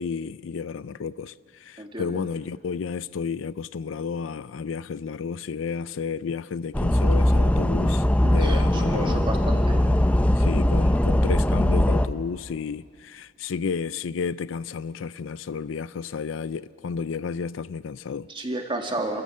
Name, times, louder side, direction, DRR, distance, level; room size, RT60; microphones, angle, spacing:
voice 1, 0.0-8.1 8.3-9.2 9.8-10.0 10.4-18.3, left 5 dB, 80° left, 0.4 m, -32 dB
voice 2, 1.8-2.2 8.2-9.8 18.3-19.2, right 2 dB, 25° right, 2.1 m, -31 dB
sound 1, 6.7-12.1, left 1 dB, 5° left, 0.6 m, -20 dB
28.0 x 14.0 x 7.6 m
head